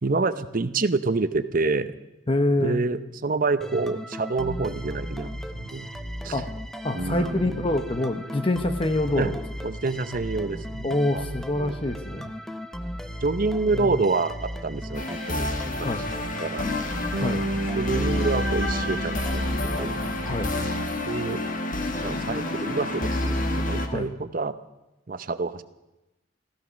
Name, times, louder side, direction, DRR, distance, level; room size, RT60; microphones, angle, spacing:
voice 1, 0.0-1.9 2.6-5.9 6.2-6.4 6.9-7.6 9.2-9.3 9.6-11.3 11.5-11.7 13.2-15.5 15.8-15.9 16.4-16.7 17.8-20.0 21.1-21.4 22.0-24.6 25.1-25.6, right 3 dB, 45° right, 12 dB, 0.8 m, -27 dB
voice 2, 2.3-2.8 6.3-6.5 6.8-9.3 10.8-12.3 13.7-13.9 15.8-16.0 17.2-17.4 20.2-20.5 23.9-24.1, left 2 dB, 30° left, 7 dB, 0.9 m, -26 dB
sound 1, 3.6-21.1, equal, ahead, 0.7 m, -36 dB
sound 2, 14.9-23.9, left 1 dB, 45° left, 1.6 m, -29 dB
Bass guitar, 17.1-21.4, right 2 dB, 80° right, 0.8 m, -33 dB
15.0 x 14.5 x 6.3 m, 0.98 s
head